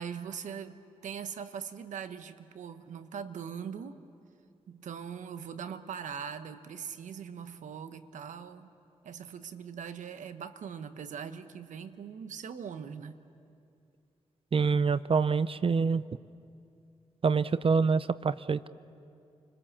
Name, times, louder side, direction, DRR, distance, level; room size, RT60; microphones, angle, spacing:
voice 1, 0.0-4.0 4.7-8.7 9.0-13.2, right 7 dB, 90° right, 10 dB, 1.0 m, -41 dB
voice 2, 14.5-16.0 17.2-18.7, right 5 dB, 50° right, 16 dB, 0.6 m, -26 dB
30.0 x 21.0 x 7.3 m, 2.4 s
cardioid pair, 55°, 12 cm